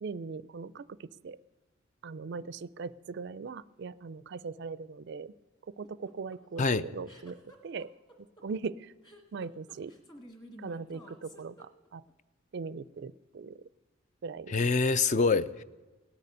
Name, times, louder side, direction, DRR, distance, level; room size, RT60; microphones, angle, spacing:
voice 1, 0.0-1.4 2.0-5.3 5.8-7.9 8.4-8.9 9.3-9.9 10.6-12.0 12.5-13.6 14.2-14.5 15.3-15.4, right 4 dB, 55° right, 19 dB, 0.4 m, -40 dB
sound 1, 5.8-12.1, equal, 20° left, 1.9 m, -52 dB
voice 2, 14.5-15.6, left 4 dB, 35° left, 15 dB, 0.4 m, -25 dB
17.5 x 6.7 x 9.8 m, 1.2 s
head